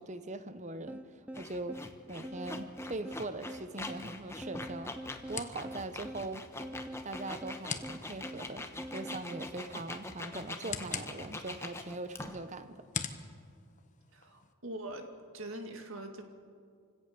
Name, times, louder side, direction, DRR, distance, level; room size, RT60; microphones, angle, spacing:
voice 1, 0.0-5.0 5.3-6.5 7.0-12.9, right 2 dB, 30° right, 11 dB, 1.0 m, -41 dB
sound 1, 0.9-9.6, equal, 5° right, 0.5 m, -45 dB
sound 2, 1.3-12.5, left 2 dB, 10° left, 1.1 m, -44 dB
sound 3, 3.6-14.5, left 7 dB, 35° left, 1.1 m, -46 dB
voice 2, 14.1-15.1 15.3-16.2, right 1 dB, 65° right, 4 dB, 2.4 m, -42 dB
27.0 x 17.0 x 6.9 m, 2.2 s
head